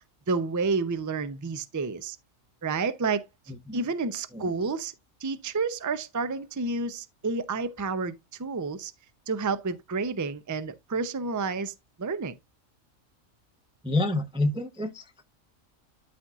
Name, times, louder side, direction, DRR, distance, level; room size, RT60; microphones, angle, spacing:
voice 1, 0.3-2.2 2.6-3.3 3.7-4.9 5.2-8.9 9.3-12.4, right 4 dB, 25° right, 0.4 m, -30 dB
voice 2, 3.5-3.9 4.3-4.5 13.8-15.2, left 2 dB, 5° right, 0.8 m, -29 dB
12.5 x 4.3 x 2.4 m
omnidirectional pair, 1.3 m